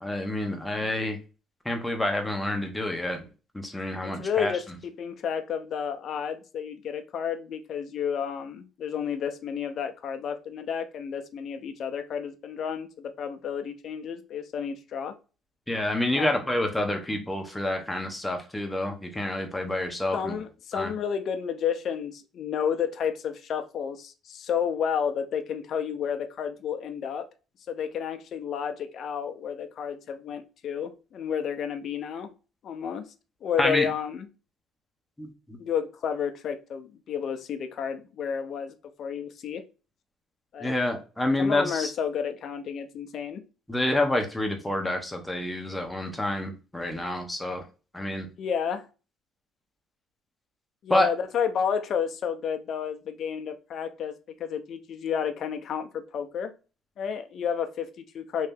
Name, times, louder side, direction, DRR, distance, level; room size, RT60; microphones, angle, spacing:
voice 1, 0.0-1.2 1.6-3.3 3.5-4.5 15.7-20.4 20.7-20.9 33.6-33.9 35.2-35.3 40.6-41.9 43.7-47.6 47.9-48.3 50.9-51.1, left 1 dB, 10° left, 4 dB, 0.8 m, -28 dB
voice 2, 4.0-15.2 16.1-16.4 20.1-27.3 27.7-32.3 32.6-33.0 33.4-34.3 35.6-39.6 40.5-40.7 41.4-43.4 48.4-48.9 50.8-54.1 54.4-56.5 57.0-58.5, left 7 dB, 55° left, 7 dB, 0.5 m, -31 dB
3.1 x 2.8 x 3.6 m, 0.33 s
cardioid pair, 120°, 0 cm